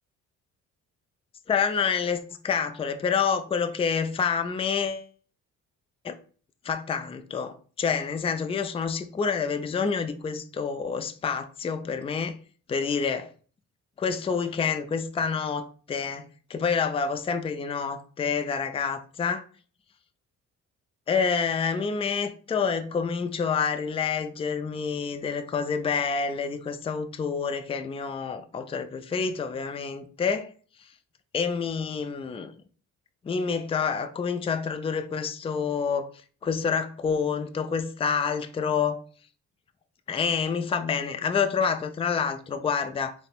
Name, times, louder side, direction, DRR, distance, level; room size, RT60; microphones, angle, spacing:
voice 1, 1.5-5.1 6.0-6.1 6.6-12.4 12.7-13.3 14.0-19.4 21.1-30.5 31.3-32.5 33.2-36.1 36.4-39.0 40.1-43.1, left 6 dB, 20° left, 0.4 m, -28 dB
3.8 x 2.1 x 4.2 m
cardioid pair, 90°, 30 cm